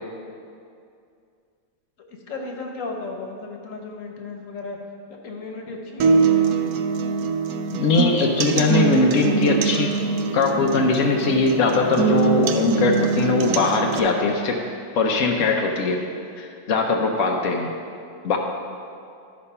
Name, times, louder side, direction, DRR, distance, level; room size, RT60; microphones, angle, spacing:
voice 1, 2.1-4.8 5.2-6.7, left 3 dB, 50° left, 1 dB, 1.2 m, -35 dB
sound 1, 6.0-14.0, right 5 dB, 70° right, 0.9 m, -23 dB
voice 2, 7.7-9.9 10.3-14.6 14.9-16.0 16.4-17.7 18.2-18.4, left 3 dB, 65° left, 0 dB, 0.7 m, -20 dB
12.0 x 5.2 x 5.5 m, 2.4 s
omnidirectional pair, 2.1 m